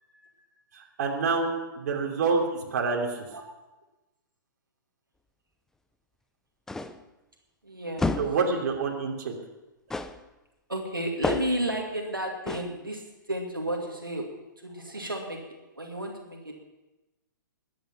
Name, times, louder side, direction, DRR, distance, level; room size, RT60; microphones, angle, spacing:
voice 1, 0.7-2.4 2.7-3.1 8.2-9.3, right 4 dB, 50° right, 1 dB, 2.8 m, -27 dB
sound 1, 6.7-7.1 8.0-8.5 9.9-10.3 11.2-11.7 12.5-12.8, left 3 dB, 5° left, 0.5 m, -30 dB
voice 2, 7.6-8.2 10.7-13.0 13.3-14.3 14.6-15.4 15.8-16.5, right 1 dB, 85° right, 1 dB, 2.3 m, -32 dB
21.0 x 9.4 x 5.8 m, 1.0 s
figure-of-eight pair, 115°, 11 cm